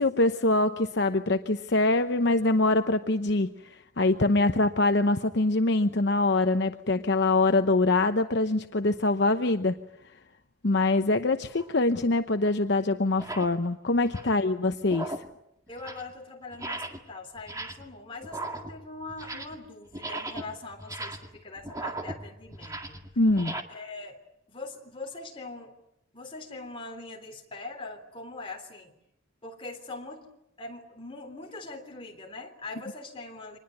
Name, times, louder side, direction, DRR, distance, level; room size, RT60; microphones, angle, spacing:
voice 1, 0.0-9.7 10.6-15.1 23.2-23.6, left 2 dB, 60° left, 8 dB, 0.9 m, -24 dB
sound 1, 11.5-11.7 12.4-12.5 13.1-13.6 13.9-14.4 14.8-15.4 15.7-16.1 16.5-17.1 17.4-17.9 18.2-19.6 19.9-23.6, right 2 dB, 15° right, 1.9 m, -38 dB
voice 2, 14.2-14.5 15.7-23.0 23.7-24.2 24.5-25.8 26.1-28.9 29.4-30.3 30.6-33.6, left 3 dB, 25° left, 3 dB, 3.5 m, -42 dB
25.5 x 20.5 x 9.2 m, 0.83 s
head